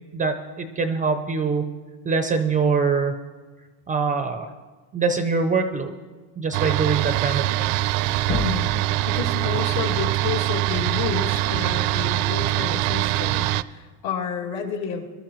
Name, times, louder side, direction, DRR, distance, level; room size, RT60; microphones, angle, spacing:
voice 1, 0.1-1.7 2.0-3.1 3.9-4.5 4.9-5.9 6.4-7.7, right 4 dB, 20° right, 7 dB, 0.3 m, -23 dB
sound 1, 6.5-13.6, right 16 dB, 80° right, 0.5 m, -23 dB
sound 2, 8.2-8.8 10.6-10.7 12.5-12.6 13.5-13.6, left 5 dB, 35° left, 0.9 m, -31 dB
voice 2, 8.3-8.7 9.1-15.0, left 6 dB, 75° left, -1 dB, 2.3 m, -30 dB
22.5 x 12.5 x 3.0 m, 1.3 s
cardioid pair, 160°, 46 cm